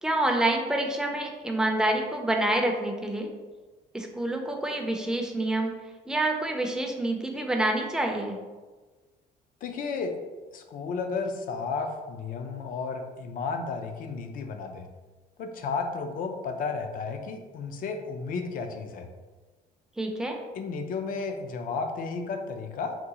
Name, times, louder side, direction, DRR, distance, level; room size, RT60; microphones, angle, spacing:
voice 1, 0.0-3.3 3.9-5.7 6.1-8.4 20.0-20.4, right 1 dB, 5° right, 2 dB, 0.4 m, -27 dB
voice 2, 9.6-10.2 10.5-14.9 15.4-19.1 20.5-22.9, left 4 dB, 55° left, 5 dB, 0.4 m, -33 dB
3.7 x 2.3 x 2.8 m, 1.3 s
cardioid pair, 110°, 17 cm